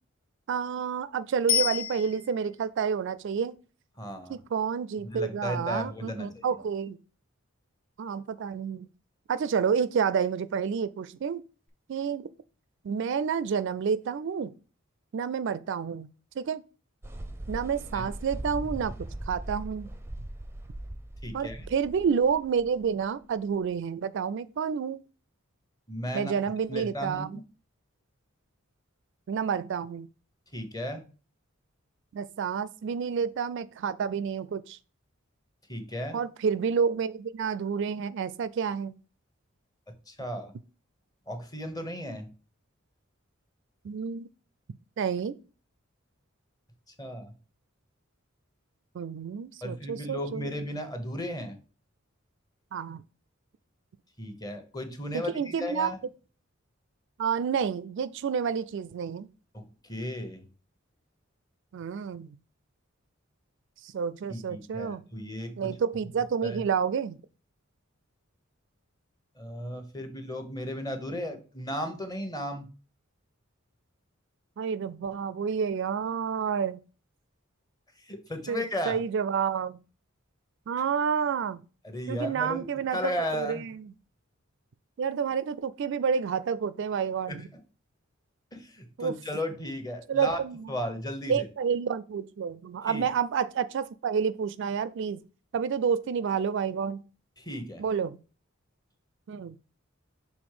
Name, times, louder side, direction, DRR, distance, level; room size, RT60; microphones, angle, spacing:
voice 1, 0.5-3.5 4.3-7.0 8.0-8.9 9.3-11.4 11.9-12.3 12.8-14.5 15.1-16.1 16.4-16.6 17.5-18.9 19.3-19.9 21.3-25.0 26.1-27.4 29.3-30.1 32.1-34.8 36.1-38.9 43.8-44.3 45.0-45.3 48.9-50.5 52.7-53.0 55.1-55.9 57.2-59.3 61.7-62.4 63.8-65.0 65.6-67.2 74.6-76.8 78.5-79.8 80.7-81.6 82.1-83.9 85.0-87.4 89.0-89.1 90.1-90.7 91.3-95.2 95.5-97.0 97.8-98.2 99.3-99.6, right 6 dB, 60° right, 0.4 m, -29 dB
Bicycle bell, 1.5-2.6 11.7-11.8, left 8 dB, 75° left, 1.4 m, -29 dB
voice 2, 4.0-4.4 5.0-6.4 17.9-18.1 21.2-21.7 25.9-26.4 26.7-27.4 30.5-31.0 35.7-36.2 40.1-40.5 41.3-42.3 47.0-47.3 49.6-51.6 54.2-56.0 59.5-60.4 64.3-65.7 66.4-66.6 69.4-72.7 78.1-79.0 81.8-83.7 87.3-87.4 88.5-90.4 90.7-91.5 92.9-93.0 97.4-97.8, equal, 20° left, 1.0 m, -35 dB
sound 1, 17.0-23.7, right 1 dB, 10° right, 0.5 m, -39 dB
6.2 x 3.6 x 4.9 m
head